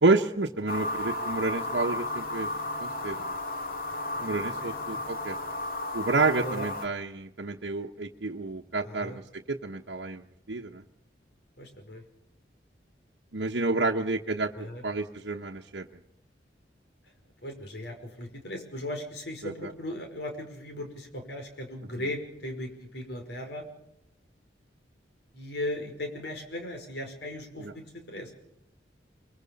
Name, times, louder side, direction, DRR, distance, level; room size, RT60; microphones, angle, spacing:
voice 1, 0.0-2.5 2.8-3.3 4.2-5.3 5.9-10.2 10.5-10.8 13.3-14.5 14.8-15.9 19.4-19.5 27.6-27.7, right 3 dB, 85° right, -1 dB, 1.1 m, -29 dB
sound 1, 0.7-6.9, left 2 dB, 50° left, 2.7 m, -33 dB
voice 2, 4.1-5.0 6.4-6.7 8.8-9.2 11.6-12.0 14.5-14.8 17.4-23.6 25.3-28.3, left 1 dB, 75° left, 4 dB, 5.4 m, -38 dB
24.0 x 23.0 x 5.4 m, 0.84 s
head